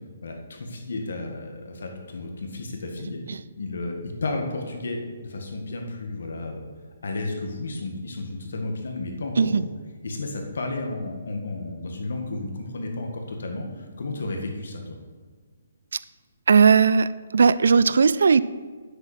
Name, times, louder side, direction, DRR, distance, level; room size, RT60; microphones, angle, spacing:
voice 1, 0.2-3.2 3.6-6.7 7.0-9.7 10.0-15.0, left 2 dB, 60° left, 3 dB, 1.9 m, -32 dB
voice 2, 16.5-18.4, right 5 dB, 65° right, 17 dB, 0.4 m, -18 dB
10.5 x 7.8 x 4.4 m, 1.5 s
hypercardioid pair, 175°, 0 cm